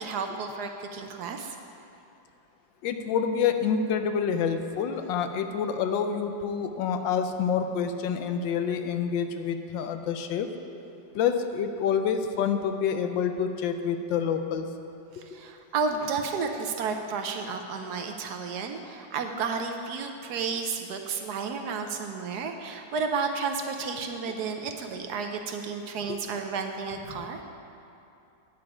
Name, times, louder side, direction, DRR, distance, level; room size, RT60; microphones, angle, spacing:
voice 1, 0.0-1.6 15.1-27.4, right 5 dB, 70° right, 5 dB, 1.0 m, -32 dB
voice 2, 2.8-10.5 11.1-14.7 26.1-26.2, left 7 dB, 75° left, 7 dB, 1.3 m, -27 dB
9.6 x 8.7 x 4.8 m, 2.7 s
omnidirectional pair, 2.1 m